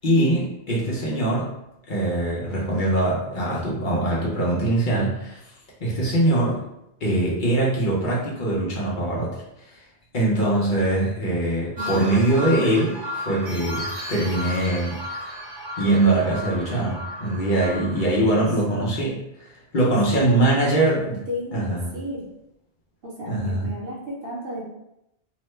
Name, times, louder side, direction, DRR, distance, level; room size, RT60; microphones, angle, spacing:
voice 1, 0.0-1.5 1.9-5.4 5.8-6.6 7.0-9.4 10.1-15.0 15.8-21.2 21.5-21.9 23.3-23.7, right 1 dB, 55° left, -5 dB, 0.8 m, -22 dB
voice 2, 11.8-12.1 18.3-18.9 19.8-21.0 21.3-22.2 23.0-24.6, equal, 60° right, -4 dB, 1.0 m, -33 dB
sound 1, 11.8-18.2, left 1 dB, 85° right, 1.2 m, -34 dB
2.8 x 2.1 x 3.1 m, 0.85 s
omnidirectional pair, 1.1 m